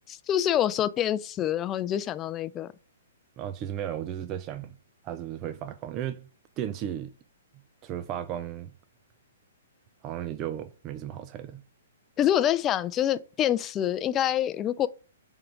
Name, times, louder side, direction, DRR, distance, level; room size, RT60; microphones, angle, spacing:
voice 1, 0.3-2.7 12.2-14.9, left 11 dB, 25° left, 0.5 m, -26 dB
voice 2, 3.4-4.8 5.0-6.3 6.6-7.1 7.8-8.7 10.0-11.6, right 10 dB, 30° right, 0.5 m, -35 dB
7.6 x 3.8 x 4.7 m
hypercardioid pair, 130°, 0 cm